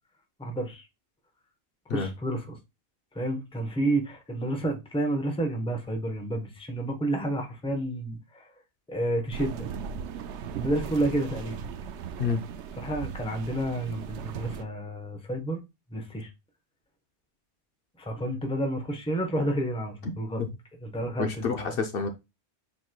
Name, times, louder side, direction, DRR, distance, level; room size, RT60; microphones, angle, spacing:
voice 1, 0.4-0.9 1.9-2.6 3.1-8.5 8.9-9.7 10.5-11.7 12.8-15.6 15.9-16.3 18.0-20.4 20.8-21.8, right 1 dB, 5° left, 0.7 m, -30 dB
sound 1, 9.3-14.6, right 6 dB, 85° right, 0.9 m, -38 dB
voice 2, 21.2-22.1, left 5 dB, 60° left, 0.8 m, -28 dB
7.6 x 3.0 x 2.2 m
omnidirectional pair, 1.1 m